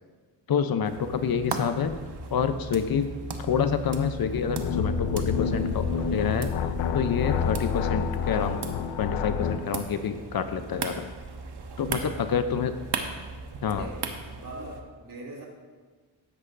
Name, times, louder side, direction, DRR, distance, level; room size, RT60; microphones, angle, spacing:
voice 1, 0.5-2.0 2.3-3.1 3.4-6.5 6.9-8.6 9.0-11.1 11.8-12.8 13.6-13.9, left 7 dB, 55° left, 9 dB, 0.7 m, -27 dB
sound 1, 0.8-14.8, right 4 dB, 65° right, 1.2 m, -38 dB
Wind, 1.5-14.7, right 2 dB, 15° right, 1.3 m, -46 dB
sound 2, 4.4-9.7, left 6 dB, 90° left, 0.7 m, -28 dB
voice 2, 13.7-14.0 14.3-15.4, right 2 dB, 50° right, -2 dB, 2.6 m, -41 dB
13.0 x 9.7 x 2.6 m, 1.5 s
cardioid pair, 75°, 43 cm